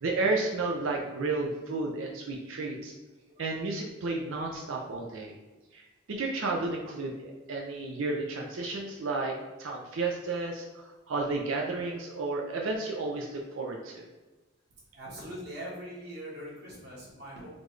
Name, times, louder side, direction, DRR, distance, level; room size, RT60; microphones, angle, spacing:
voice 1, 0.0-2.9 3.4-5.3 5.7-14.0, right 3 dB, 80° right, 0 dB, 0.5 m, -32 dB
voice 2, 14.9-17.5, equal, 50° right, -5 dB, 1.4 m, -42 dB
4.1 x 3.1 x 3.1 m, 1.2 s
head